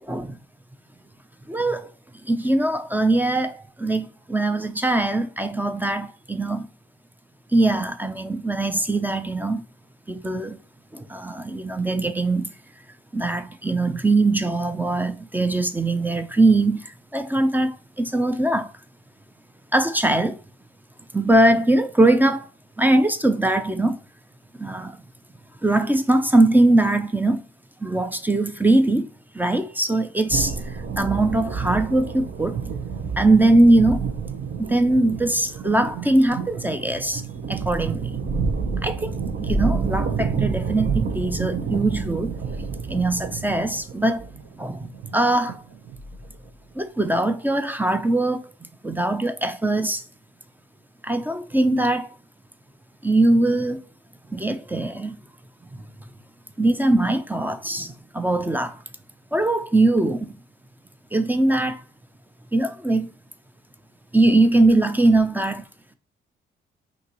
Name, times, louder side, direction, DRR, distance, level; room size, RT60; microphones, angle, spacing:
voice 1, 1.5-1.9 2.3-6.7 7.5-9.6 10.1-10.6 10.9-12.5 13.1-16.8 17.1-18.7 19.7-20.4 21.1-22.5 22.8-24.0 24.6-25.0 25.6-27.4 27.8-29.1 29.3-30.6 31.0-32.6 33.0-34.0 34.6-37.2 37.5-38.1 38.8-39.2 39.5-42.3 42.9-44.2 44.6-45.6 46.8-48.4 48.8-50.0 51.0-52.1 53.0-53.8 54.3-55.2 56.6-58.8 59.3-60.3 61.1-61.8 62.5-63.1 64.1-65.6, right 2 dB, 10° right, 0.5 m, -21 dB
sound 1, 30.3-46.5, right 5 dB, 55° right, 0.9 m, -29 dB
5.6 x 2.7 x 3.0 m
cardioid pair, 90°, 20 cm